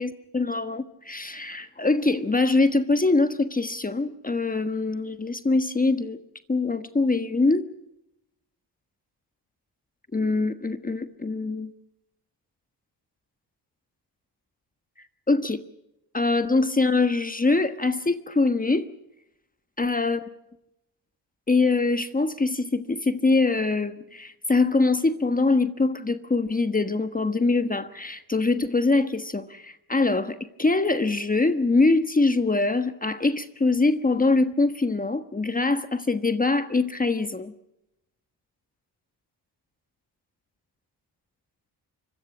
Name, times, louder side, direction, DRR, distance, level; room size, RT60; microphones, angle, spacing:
voice 1, 0.0-6.2 6.5-7.7 10.1-11.7 15.0-15.6 16.1-18.9 19.8-20.2 21.5-37.5, left 3 dB, 20° left, 1.3 m, -23 dB
25.0 x 22.5 x 6.1 m
cardioid pair, 85°, 42 cm